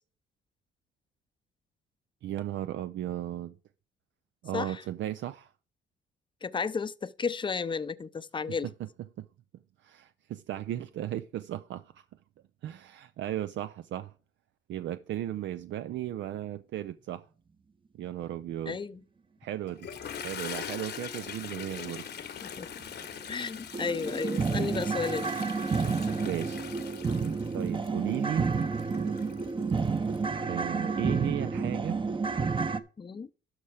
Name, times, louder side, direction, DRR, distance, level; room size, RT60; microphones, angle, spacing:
voice 1, 2.2-3.6 4.4-5.5 9.2-9.3 9.8-12.0 12.6-14.1 14.7-17.3 17.9-18.8 19.4-19.9 20.2-22.0 26.2-26.6 27.5-28.5 30.5-32.0, right 12 dB, 70° right, 0.5 m, -35 dB
voice 2, 4.5-4.8 6.4-8.7 18.7-19.0 22.4-22.7 23.3-25.3 33.0-33.3, left 5 dB, 25° left, 0.6 m, -33 dB
Toilet flush, 19.7-30.2, left 8 dB, 55° left, 1.1 m, -42 dB
sound 1, 22.8-22.9 23.3-23.4 23.7-32.8, right 4 dB, 25° right, 0.8 m, -30 dB
12.5 x 4.3 x 4.8 m
cardioid pair, 90°, 20 cm